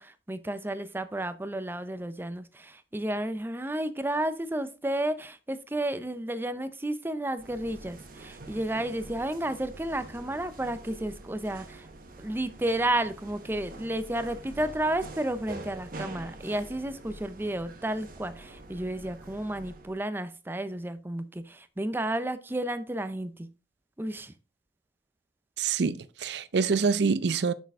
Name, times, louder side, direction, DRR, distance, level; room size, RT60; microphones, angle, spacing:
voice 1, 0.0-11.9 12.2-23.5 24.0-24.3, right 1 dB, 10° right, 0.5 m, -32 dB
sound 1, 7.4-20.0, right 2 dB, 55° right, 1.1 m, -45 dB
voice 2, 25.6-27.5, right 5 dB, 70° right, 0.5 m, -26 dB
6.8 x 6.2 x 3.5 m
head